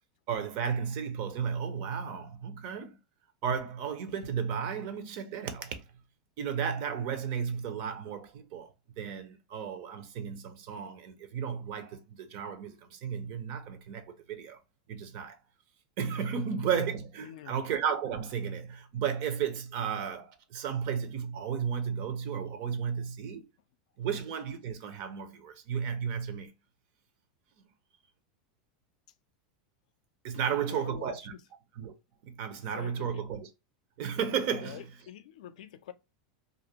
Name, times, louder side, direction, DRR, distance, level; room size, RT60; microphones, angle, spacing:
voice 1, 0.3-3.0 3.4-5.8 6.4-8.7 9.0-14.6 14.9-15.4 16.0-23.4 24.0-26.5 30.2-31.3 31.8-31.9 32.2-33.5 34.0-34.8, right 7 dB, 50° right, 0.6 m, -34 dB
voice 2, 17.2-17.6 30.3-31.4 32.7-33.3 34.5-35.9, left 11 dB, 80° left, 0.3 m, -46 dB
2.5 x 2.0 x 2.8 m
supercardioid pair, 150°, 4 cm